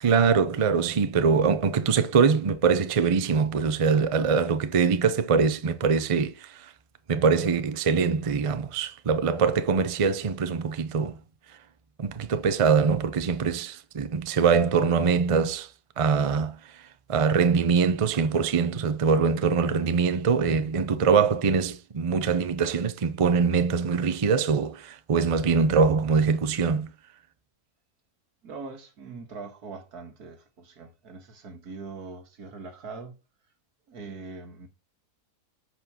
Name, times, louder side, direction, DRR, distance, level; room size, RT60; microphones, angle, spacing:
voice 1, 0.0-6.5 7.1-11.2 12.0-15.7 16.0-16.6 17.1-26.9, right 5 dB, 45° right, 0.4 m, -23 dB
voice 2, 28.4-33.2 33.9-34.7, right 4 dB, 80° right, 2.1 m, -42 dB
8.2 x 4.6 x 6.1 m
omnidirectional pair, 1.6 m